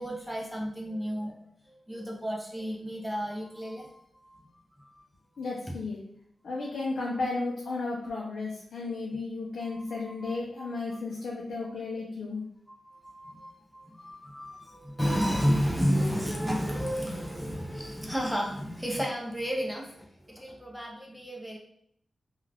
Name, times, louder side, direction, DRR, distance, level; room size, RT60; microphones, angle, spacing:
voice 1, 0.0-1.4 1.7-4.5 4.8-5.0 9.6-9.8 10.0-11.0 12.8-21.6, equal, 5° right, -2 dB, 0.6 m, -32 dB
voice 2, 5.4-6.0 6.4-12.4, left 3 dB, 80° left, -4 dB, 0.5 m, -34 dB
2.3 x 2.3 x 3.3 m, 0.69 s
cardioid pair, 70°, 0 cm